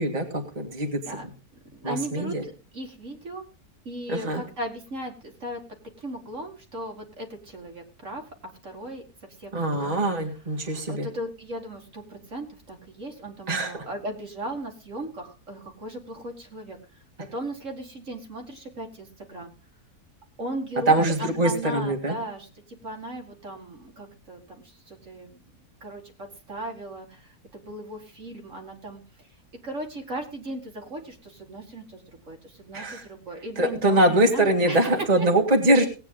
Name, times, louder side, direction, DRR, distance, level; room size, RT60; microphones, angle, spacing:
voice 1, 0.0-1.3 1.8-2.4 4.1-4.4 9.5-11.1 13.5-13.7 20.9-22.2 32.7-33.1 33.6-35.9, right 1 dB, 25° right, 2 dB, 2.0 m, -23 dB
voice 2, 1.7-3.5 3.9-5.6 6.0-8.2 8.6-9.0 9.4-9.9 10.6-16.8 17.3-19.5 20.4-22.5 22.8-25.4 25.8-29.3 29.6-35.3, right 1 dB, 50° right, 2 dB, 2.2 m, -37 dB
18.5 x 9.0 x 3.8 m, 0.34 s
omnidirectional pair, 1.7 m